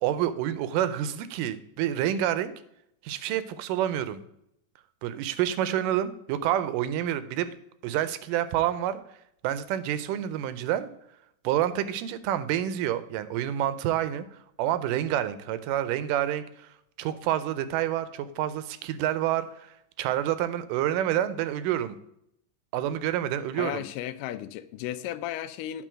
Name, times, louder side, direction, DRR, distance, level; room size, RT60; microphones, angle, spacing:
voice 1, 0.0-2.5 3.0-4.2 5.0-7.5 7.8-9.0 9.4-10.9 11.4-14.3 14.6-16.4 17.0-19.7 20.0-22.0 22.7-23.9, right 11 dB, 80° right, 2.2 m, -28 dB
voice 2, 23.5-25.9, left 12 dB, 80° left, 2.1 m, -34 dB
9.2 x 3.8 x 6.2 m
omnidirectional pair, 3.9 m